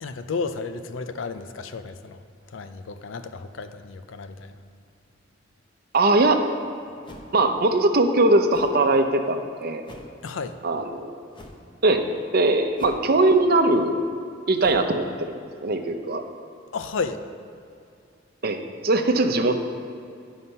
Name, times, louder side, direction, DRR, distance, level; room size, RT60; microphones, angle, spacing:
voice 1, 0.0-2.2 2.5-4.6 10.2-10.6 16.7-17.2, left 4 dB, 75° left, 10 dB, 0.5 m, -32 dB
voice 2, 5.9-6.4 7.3-9.9 10.6-11.2 11.8-12.0 12.3-14.0 14.5-15.1 15.6-16.2 18.4-19.6, right 2 dB, 50° right, 6 dB, 0.7 m, -20 dB
sound 1, 7.0-7.5 8.5-8.8 9.8-10.2 11.3-11.7 12.8-13.2 14.5-14.9, left 1 dB, 25° left, 0.8 m, -45 dB
11.5 x 5.7 x 5.4 m, 2.5 s
head